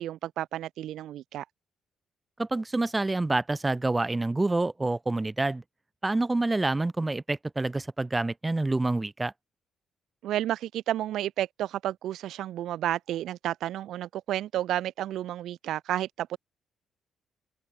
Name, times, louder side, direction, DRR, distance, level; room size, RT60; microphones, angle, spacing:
voice 1, 0.0-1.4 10.2-16.4, right 12 dB, 80° right, 6.6 m, -31 dB
voice 2, 2.4-5.6 6.0-9.3, right 2 dB, 15° right, 5.9 m, -27 dB
cardioid pair, 90°, 0 cm